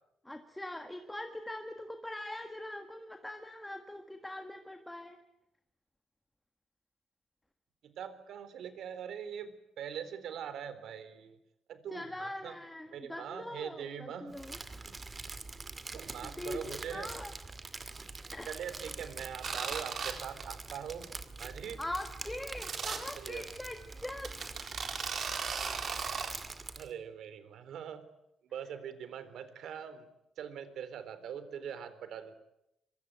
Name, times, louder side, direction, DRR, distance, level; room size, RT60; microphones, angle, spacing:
voice 1, 0.2-5.2 11.9-14.6 16.2-17.3 18.3-18.5 21.8-24.6, left 1 dB, 5° left, 6 dB, 1.6 m, -42 dB
voice 2, 7.8-11.4 11.7-12.6 12.9-14.4 14.9-15.0 15.9-17.1 18.5-21.1 21.4-21.8 23.2-23.5 26.8-28.0 28.4-30.1 30.4-32.3, right 8 dB, 70° right, 12 dB, 3.8 m, -42 dB
Crumpling crinkling, 14.3-26.9, right 3 dB, 20° right, 2.2 m, -45 dB
sound 1, 19.4-20.1 20.4-20.7 21.0-21.1 21.4-21.5 22.6-23.0 23.6-23.7 24.2-26.3, right 6 dB, 45° right, 4.2 m, -36 dB
26.0 x 24.0 x 9.1 m, 0.84 s
cardioid pair, 165°, 0 cm